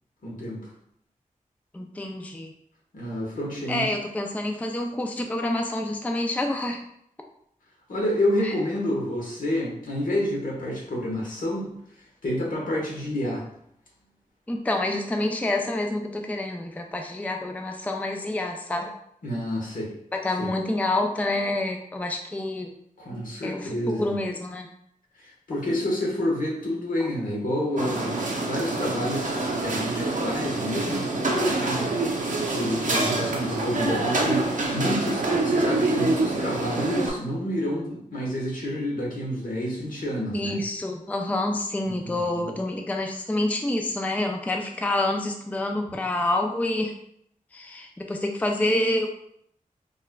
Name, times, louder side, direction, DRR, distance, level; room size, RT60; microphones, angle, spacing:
voice 1, 0.2-0.7 2.9-3.9 7.9-11.7 12.2-13.4 19.2-19.9 20.4-20.5 23.0-24.2 25.2-29.3 29.6-31.9 32.5-40.6 41.8-42.5, left 1 dB, 75° left, -3 dB, 1.2 m, -29 dB
voice 2, 1.7-2.5 3.7-6.8 8.4-8.5 14.5-18.9 20.1-22.7 23.4-24.7 40.3-46.9 47.5-49.1, left 2 dB, 10° left, 3 dB, 0.4 m, -27 dB
sound 1, 27.8-37.1, right 2 dB, 70° right, 0.7 m, -26 dB
5.2 x 2.4 x 2.2 m, 0.71 s
wide cardioid pair, 75°, 14 cm